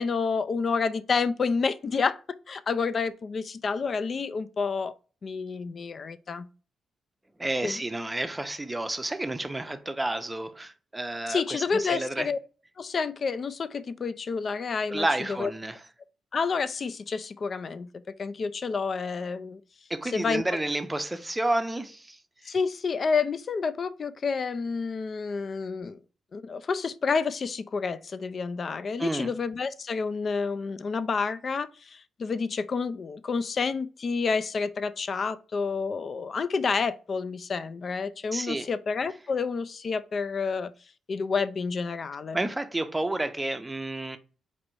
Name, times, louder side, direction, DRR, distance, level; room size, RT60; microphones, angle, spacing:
voice 1, 0.0-4.9 5.2-6.5 7.6-7.8 11.3-12.4 12.8-15.0 15.4-15.5 16.3-17.9 18.2-19.6 20.1-20.4 22.4-26.0 26.3-40.7 41.1-42.4, left 5 dB, 50° left, 0.4 m, -29 dB
voice 2, 7.4-12.3 14.9-15.8 19.9-22.5 29.0-29.3 38.3-38.7 42.3-44.2, right 2 dB, 15° right, 0.6 m, -30 dB
4.1 x 2.6 x 4.5 m
supercardioid pair, 65°, 0 cm